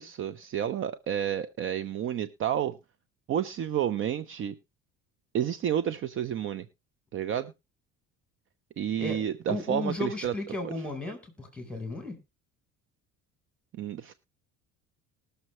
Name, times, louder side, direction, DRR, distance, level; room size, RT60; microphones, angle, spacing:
voice 1, 0.0-2.8 3.3-4.5 5.3-6.7 7.1-7.5 8.8-10.3 10.6-10.7 13.8-14.1, right 9 dB, 45° right, 13 dB, 0.7 m, -30 dB
voice 2, 9.5-12.2, left 2 dB, 5° left, 5 dB, 3.9 m, -34 dB
20.0 x 6.9 x 3.1 m, 0.25 s
cardioid pair, 125°, 30 cm